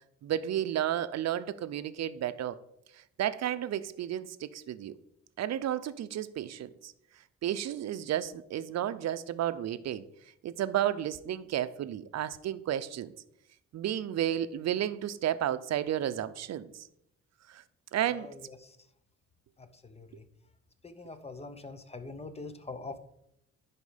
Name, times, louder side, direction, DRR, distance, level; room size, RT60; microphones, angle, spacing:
voice 1, 0.2-2.6 3.2-4.9 5.4-6.9 7.4-10.0 10.4-13.1 13.7-16.9 17.5-17.6 17.9-18.3, right 11 dB, 60° right, 0.6 m, -32 dB
voice 2, 18.1-18.8 19.6-20.2 20.8-23.0, left 3 dB, 20° left, 0.9 m, -44 dB
10.5 x 4.5 x 5.0 m
cardioid pair, 90°, 30 cm